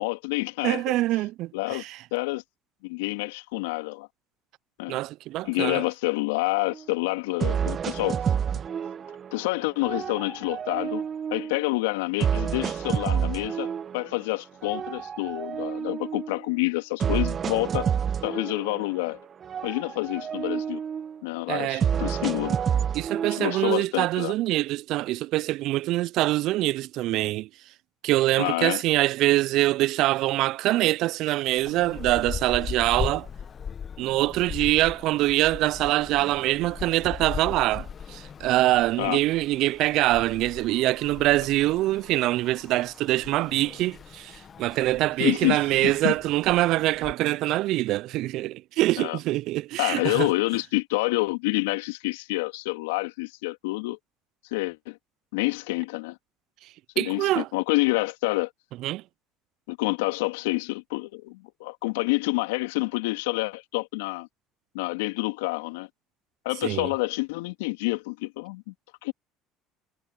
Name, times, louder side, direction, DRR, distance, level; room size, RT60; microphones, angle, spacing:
voice 1, 0.0-0.8 1.5-1.8 2.1-2.4 2.8-4.1 4.8-5.0 5.4-8.2 9.3-17.9 18.2-19.2 19.6-20.8 21.2-22.6 23.2-24.3 28.4-28.8 39.0-39.2 45.2-45.6 46.0-46.1 49.0-49.2 49.8-54.0 54.5-55.0 55.3-56.2 57.0-58.5 59.7-64.3 64.7-65.9 66.4-68.7 69.0-69.1, left 23 dB, 75° left, 2.3 m, -28 dB
voice 2, 0.6-2.0 4.9-5.8 21.5-21.8 22.9-27.5 28.0-33.3 34.0-50.3 57.0-57.5 58.8-59.0 66.6-66.9, right 17 dB, 60° right, 0.4 m, -24 dB
sound 1, 6.7-6.8 7.4-9.4 9.8-11.6 12.2-14.2 14.6-16.4 17.0-19.2 19.4-21.2 21.8-23.8, right 8 dB, 40° right, 1.2 m, -29 dB
sound 2, 31.6-47.1, left 7 dB, 40° left, 1.1 m, -39 dB
hypercardioid pair, 65°, 0 cm